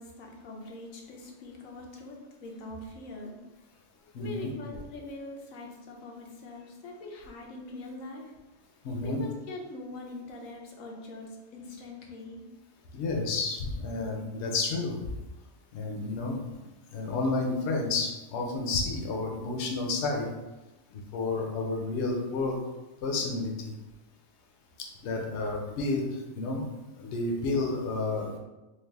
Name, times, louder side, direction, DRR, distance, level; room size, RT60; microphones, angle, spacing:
voice 1, 0.0-3.4 4.2-8.3 9.0-12.4, left 2 dB, 85° left, 0 dB, 1.1 m, -43 dB
voice 2, 4.1-4.5 8.8-9.2 12.9-15.0 15.7-16.4 16.9-20.3 20.9-22.6 23.0-23.8 25.0-26.7 27.0-28.4, left 3 dB, 65° left, 0 dB, 0.9 m, -30 dB
3.3 x 2.4 x 3.4 m, 1.1 s
omnidirectional pair, 1.4 m